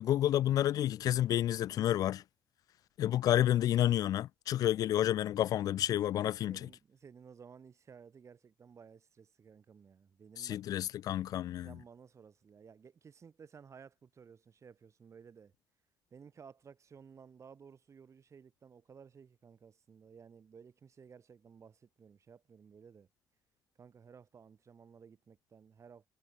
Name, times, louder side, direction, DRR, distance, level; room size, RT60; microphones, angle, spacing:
voice 1, 0.0-2.2 3.0-6.6 10.4-11.7, left 12 dB, 50° left, 0.5 m, -30 dB
voice 2, 6.5-10.8 11.6-15.5 16.1-23.1 23.8-26.1, right 6 dB, 35° right, 7.9 m, -56 dB
figure-of-eight pair, 50°, 8 cm